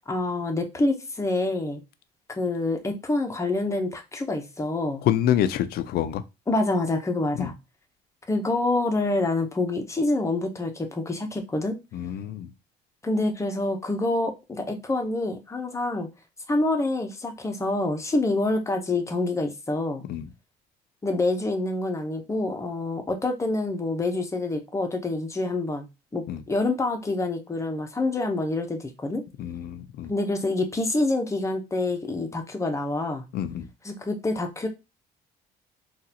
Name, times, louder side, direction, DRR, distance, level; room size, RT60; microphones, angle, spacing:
voice 1, 0.1-1.8 2.3-5.0 6.5-7.5 8.3-11.8 13.0-16.1 16.5-20.0 21.0-25.8 26.1-29.2 30.1-33.2 33.8-34.7, left 2 dB, 15° left, 0.8 m, -27 dB
voice 2, 5.0-6.2 7.4-7.5 11.9-12.5 20.1-20.3 26.3-26.4 29.4-30.1 33.3-33.7, left 11 dB, 70° left, 0.5 m, -26 dB
3.8 x 2.4 x 2.8 m
cardioid pair, 110°, 17 cm